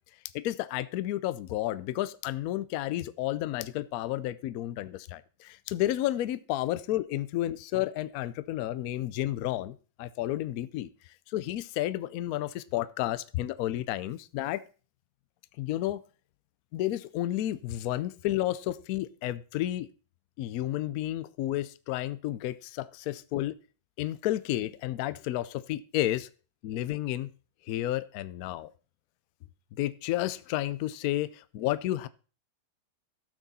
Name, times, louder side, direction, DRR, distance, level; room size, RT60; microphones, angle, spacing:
voice 1, 0.3-10.9 11.3-14.6 15.6-16.0 16.7-19.9 20.4-23.5 24.0-26.3 26.6-27.3 27.7-28.7 29.8-32.1, left 14 dB, 70° left, 15 dB, 0.9 m, -31 dB
13.0 x 6.1 x 4.1 m, 0.37 s
omnidirectional pair, 2.0 m